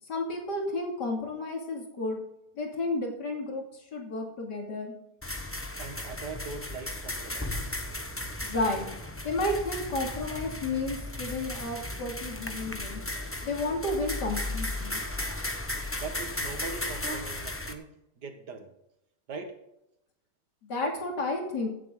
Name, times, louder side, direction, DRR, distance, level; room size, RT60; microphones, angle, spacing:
voice 1, 0.1-2.2 2.5-3.6 3.9-4.9 8.4-8.9 9.2-13.0 13.4-15.0 20.7-21.7, left 2 dB, 80° left, 1 dB, 3.2 m, -32 dB
sound 1, 5.2-17.7, left 1 dB, 10° left, 0.8 m, -35 dB
voice 2, 5.8-7.8 16.0-18.7 19.3-19.6, right 4 dB, 80° right, 5 dB, 2.3 m, -41 dB
16.0 x 8.0 x 3.9 m, 0.83 s
omnidirectional pair, 1.8 m